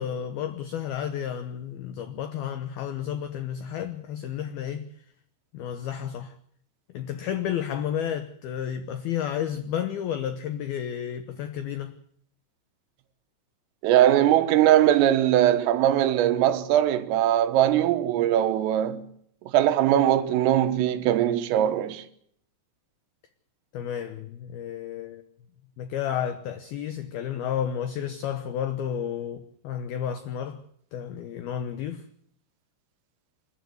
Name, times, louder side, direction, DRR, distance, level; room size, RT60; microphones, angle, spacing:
voice 1, 0.0-4.9 5.5-6.4 6.9-12.0 23.7-25.2 25.8-30.6 30.9-32.1, left 9 dB, 90° left, 2.1 m, -31 dB
voice 2, 13.8-19.0 19.5-22.0, right 12 dB, 80° right, 3.8 m, -21 dB
28.0 x 12.5 x 9.3 m
omnidirectional pair, 5.9 m